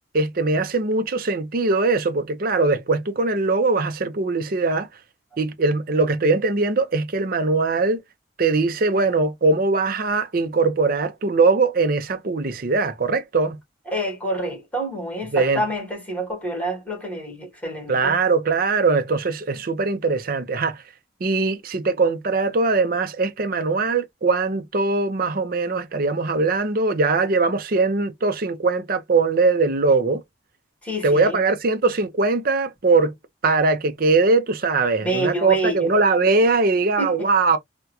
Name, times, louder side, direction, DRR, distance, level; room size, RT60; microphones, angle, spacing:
voice 1, 0.1-4.9 5.4-8.0 8.4-13.6 15.3-15.6 17.9-20.8 21.2-30.2 31.0-33.1 33.4-37.6, right 3 dB, 50° right, 0.6 m, -21 dB
voice 2, 13.9-18.2 30.8-31.4 35.0-35.9 37.0-37.3, right 1 dB, 10° left, 1.5 m, -27 dB
3.5 x 2.2 x 2.7 m
head